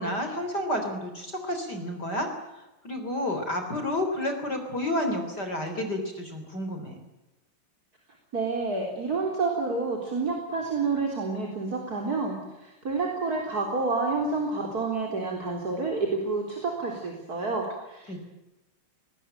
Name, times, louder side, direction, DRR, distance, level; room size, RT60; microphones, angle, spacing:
voice 1, 0.0-2.3 2.8-7.0 18.1-18.2, left 1 dB, 20° left, 5 dB, 3.5 m, -30 dB
voice 2, 8.3-18.2, right 3 dB, 20° right, 1 dB, 3.4 m, -29 dB
21.5 x 19.5 x 9.0 m, 1.0 s
omnidirectional pair, 5.7 m